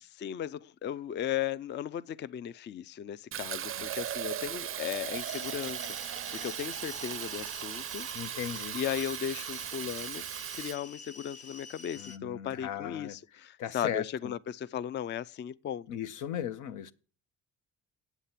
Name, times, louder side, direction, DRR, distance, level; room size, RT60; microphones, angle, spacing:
voice 1, 0.0-8.1 8.7-10.3 10.5-15.9, left 9 dB, 40° left, 0.4 m, -36 dB
Fill (with liquid), 3.3-10.8, right 11 dB, 45° right, 0.4 m, -38 dB
sound 1, 5.2-12.2, left 4 dB, 55° left, 0.8 m, -48 dB
voice 2, 8.1-8.8 12.0-13.2 13.6-14.3 15.9-16.9, left 9 dB, 85° left, 0.7 m, -37 dB
8.2 x 8.1 x 5.7 m
cardioid pair, 90°, 30 cm